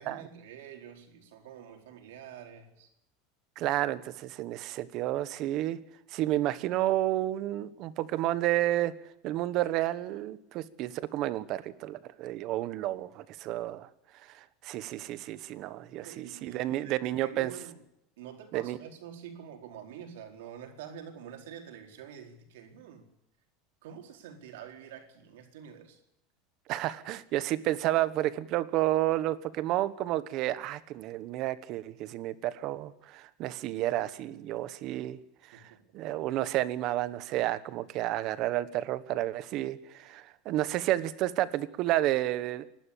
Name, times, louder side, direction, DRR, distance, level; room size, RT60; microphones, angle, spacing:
voice 1, 0.0-2.9 16.0-17.8 18.2-23.1 23.8-26.0 35.5-35.8, right 8 dB, 85° right, 4 dB, 4.4 m, -47 dB
voice 2, 3.6-5.8 6.1-8.9 9.2-13.9 14.3-17.5 18.5-18.8 26.7-35.2 35.5-35.6 35.9-42.6, right 14 dB, 45° right, 15 dB, 1.2 m, -31 dB
27.0 x 12.0 x 8.6 m, 0.82 s
supercardioid pair, 160°, 0 cm